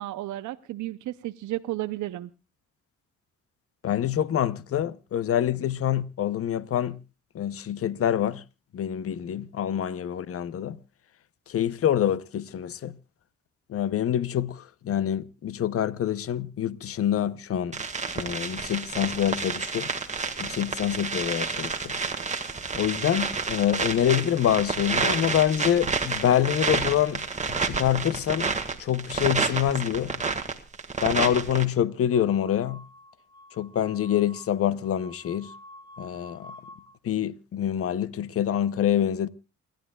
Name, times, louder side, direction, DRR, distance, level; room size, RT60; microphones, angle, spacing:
voice 1, 0.0-2.3, right 15 dB, 75° right, 0.7 m, -33 dB
voice 2, 3.8-7.0 7.3-8.4 8.7-10.8 11.5-13.0 13.7-17.8 18.1-19.9 20.4-21.9 22.7-27.2 27.5-30.1 31.0-32.8 33.6-35.5 36.0-36.5 37.0-39.3, left 10 dB, 50° left, 0.8 m, -26 dB
sound 1, 17.7-31.7, right 4 dB, 25° right, 1.8 m, -29 dB
sound 2, 32.1-36.9, left 1 dB, 15° left, 4.1 m, -49 dB
29.0 x 12.0 x 2.3 m
cardioid pair, 90°, 30 cm